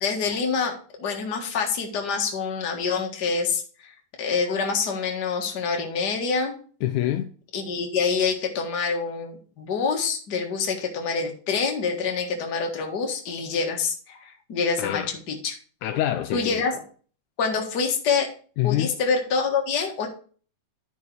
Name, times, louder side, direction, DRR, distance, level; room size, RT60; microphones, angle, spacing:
voice 1, 0.0-6.6 7.5-15.6 16.3-16.8 17.4-18.3 18.6-20.1, left 5 dB, 40° left, 1.8 m, -26 dB
voice 2, 6.8-7.3 14.8-15.1 15.8-16.6 18.6-18.9, left 13 dB, 80° left, 1.9 m, -25 dB
10.5 x 5.5 x 4.7 m
omnidirectional pair, 3.7 m